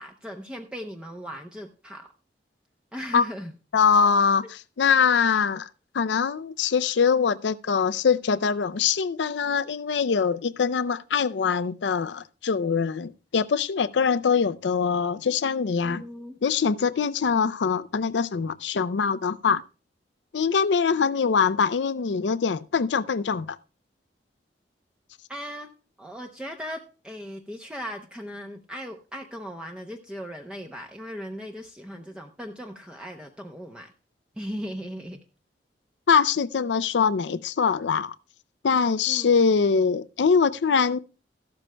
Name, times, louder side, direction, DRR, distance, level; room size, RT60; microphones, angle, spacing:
voice 1, 0.0-2.1 2.9-3.5 15.8-16.3 25.3-25.7 26.0-33.9 34.4-35.2 39.1-39.3, equal, 5° right, 0.7 m, -38 dB
voice 2, 3.7-5.7 5.9-16.0 16.4-19.6 20.3-23.6 36.1-38.1 38.6-41.0, left 6 dB, 85° left, 0.5 m, -23 dB
14.5 x 12.0 x 2.2 m
head